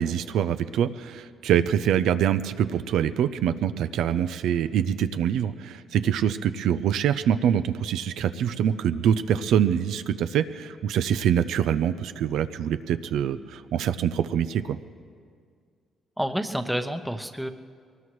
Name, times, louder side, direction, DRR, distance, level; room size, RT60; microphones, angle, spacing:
voice 1, 0.0-14.8, right 9 dB, 80° right, 11 dB, 0.5 m, -25 dB
voice 2, 16.2-17.5, equal, ahead, 7 dB, 0.8 m, -29 dB
22.5 x 19.0 x 3.1 m, 2.1 s
cardioid pair, 90°, 0 cm